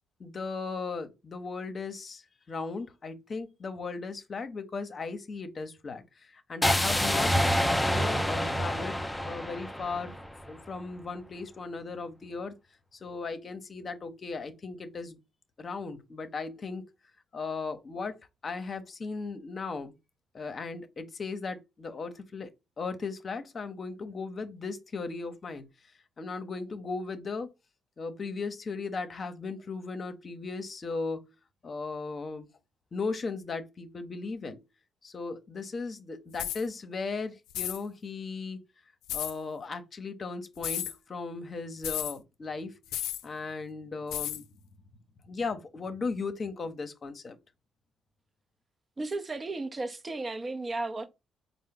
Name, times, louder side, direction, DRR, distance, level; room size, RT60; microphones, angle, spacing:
voice 1, 0.2-7.4 7.8-10.1 10.5-12.5 12.9-15.2 15.6-16.8 17.3-18.2 18.4-19.9 20.3-22.5 22.8-25.7 26.2-27.5 28.0-31.3 31.6-32.5 32.9-34.6 35.0-38.6 39.1-42.8 43.2-44.5 45.3-47.4, left 4 dB, 45° left, 0.7 m, -37 dB
sound 1, 6.6-10.7, equal, 5° left, 0.6 m, -27 dB
sound 2, 36.3-36.6 37.5-37.8 39.1-39.3 40.6-40.9 41.8-42.1 42.9-43.2 44.1-44.4, left 12 dB, 75° left, 0.3 m, -33 dB
voice 2, 49.0-51.1, right 2 dB, 35° right, 0.7 m, -34 dB
4.2 x 2.0 x 3.7 m
hypercardioid pair, 45°, 0 cm